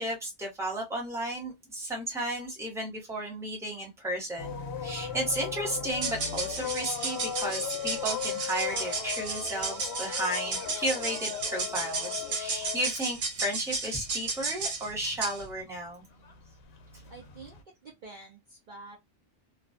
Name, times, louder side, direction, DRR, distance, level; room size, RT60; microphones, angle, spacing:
voice 1, 0.0-16.0, right 1 dB, 5° right, 0.7 m, -34 dB
sound 1, 4.4-14.4 14.7-17.6, left 8 dB, 65° left, 0.7 m, -38 dB
sound 2, 4.9-12.5, left 5 dB, 90° left, 0.9 m, -47 dB
sound 3, 5.9-15.5, right 4 dB, 70° right, 1.0 m, -34 dB
voice 2, 17.1-17.6 17.8-19.0, right 3 dB, 50° right, 0.6 m, -47 dB
2.4 x 2.2 x 2.4 m
omnidirectional pair, 1.2 m